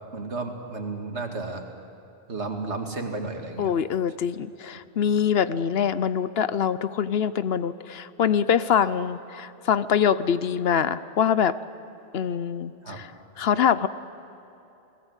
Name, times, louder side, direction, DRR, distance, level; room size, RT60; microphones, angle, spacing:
voice 1, 0.1-1.6 2.3-3.7 8.8-8.9 12.8-13.0, right 3 dB, 75° right, 4 dB, 2.4 m, -33 dB
voice 2, 3.6-11.6 12.1-13.1 13.4-13.9, left 8 dB, 65° left, 15 dB, 0.9 m, -24 dB
29.5 x 19.0 x 8.2 m, 3.0 s
omnidirectional pair, 1.2 m